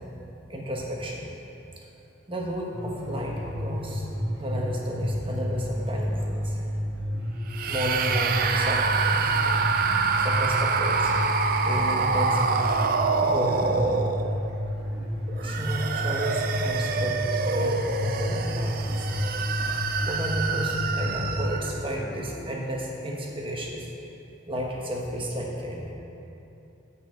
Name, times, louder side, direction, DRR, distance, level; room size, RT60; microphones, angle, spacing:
voice 1, 0.5-1.3 2.3-4.1 4.4-6.6 7.7-9.6 10.2-11.1 11.6-12.5 13.2-13.8 15.4-17.2 17.5-19.1 20.0-23.9 24.5-25.9, equal, 25° right, -1 dB, 1.1 m, -32 dB
sound 1, 2.7-21.5, left 1 dB, 70° right, 1.8 m, -31 dB
sound 2, 7.5-14.6 15.3-21.8, right 5 dB, 45° right, 0.4 m, -26 dB
9.4 x 5.5 x 6.4 m, 2.9 s
head